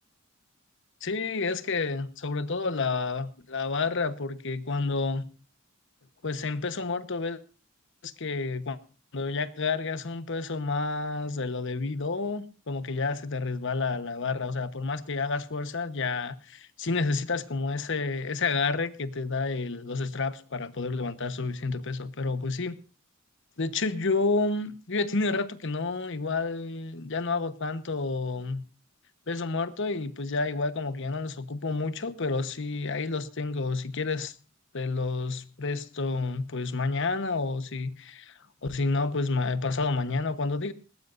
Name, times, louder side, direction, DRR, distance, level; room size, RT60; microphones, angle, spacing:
voice 1, 1.0-5.2 6.2-7.4 8.0-8.8 9.1-22.8 23.6-28.6 29.3-34.3 34.7-38.3 38.6-40.7, left 3 dB, 60° left, 1.1 m, -30 dB
20.0 x 19.0 x 2.6 m
head